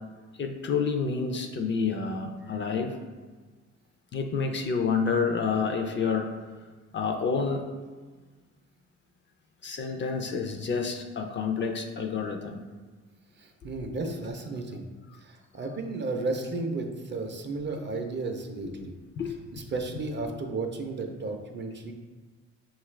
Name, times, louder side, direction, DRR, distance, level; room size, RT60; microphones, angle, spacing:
voice 1, 0.4-2.9 4.1-6.3 6.9-7.6 9.6-12.6 14.0-14.1 19.2-19.3, left 5 dB, 40° left, 4 dB, 0.4 m, -28 dB
voice 2, 13.4-14.8 15.2-18.9 19.5-21.9, right 3 dB, 40° right, 4 dB, 0.5 m, -33 dB
5.4 x 2.4 x 3.2 m, 1.4 s
cardioid pair, 90°, 30 cm